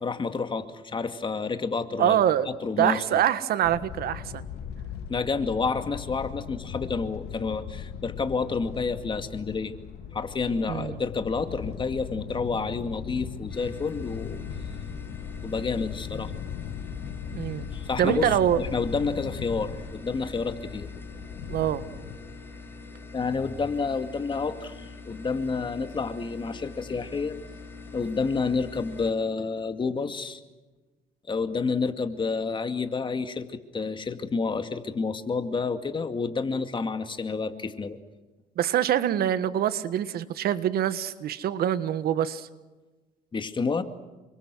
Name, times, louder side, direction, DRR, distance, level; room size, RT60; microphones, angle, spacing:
voice 1, 0.0-3.2 5.1-9.8 10.1-14.4 15.4-16.3 17.7-20.9 23.1-27.4 27.9-30.4 31.3-38.0 43.3-43.8, left 4 dB, 30° left, 8 dB, 2.3 m, -29 dB
voice 2, 2.0-2.5 2.8-4.5 10.7-11.0 17.3-17.7 18.0-18.6 21.5-21.8 38.6-42.5, right 10 dB, 65° right, 13 dB, 1.5 m, -25 dB
sound 1, 3.6-22.2, left 7 dB, 75° left, 2.6 m, -38 dB
sound 2, 13.5-29.1, left 4 dB, 15° left, 6.0 m, -44 dB
28.5 x 25.5 x 6.3 m, 1.2 s
cardioid pair, 110°, 17 cm